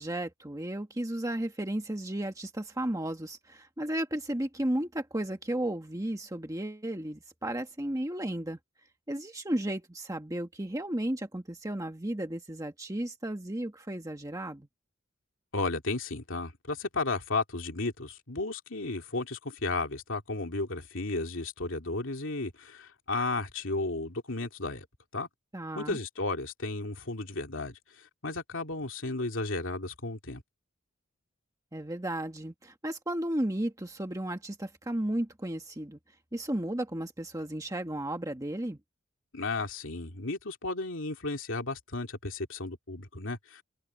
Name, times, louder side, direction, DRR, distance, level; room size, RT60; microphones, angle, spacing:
voice 1, 0.0-8.6 9.1-14.7 25.5-26.0 31.7-36.0 36.3-38.8, right 1 dB, 15° right, 1.4 m, -34 dB
voice 2, 15.5-24.8 25.1-25.3 25.7-27.7 28.2-30.4 39.3-43.6, left 3 dB, 65° left, 2.9 m, -33 dB
open air
head